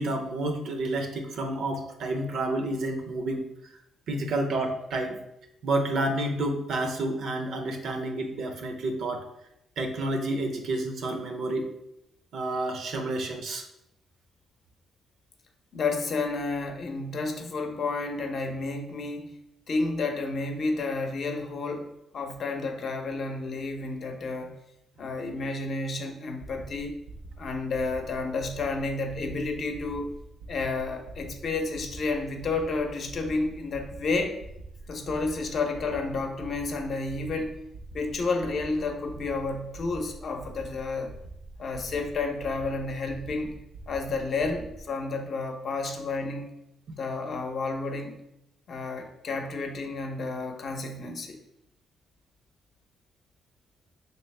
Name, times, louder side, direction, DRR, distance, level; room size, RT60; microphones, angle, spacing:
voice 1, 0.0-3.5 4.1-5.2 5.6-9.2 9.8-11.7 12.3-13.7 46.9-47.0, right 2 dB, 70° right, 5 dB, 0.6 m, -29 dB
voice 2, 15.7-19.4 19.7-24.5 25.0-27.0 27.4-30.1 30.5-34.4 34.9-37.6 37.9-41.1 41.6-43.5 43.9-46.5 47.0-48.2 48.7-51.4, left 3 dB, 55° left, 4 dB, 0.7 m, -31 dB
sound 1, 26.4-44.8, right 2 dB, 85° right, 1.0 m, -45 dB
3.4 x 2.9 x 3.2 m, 0.82 s
cardioid pair, 90°, 0 cm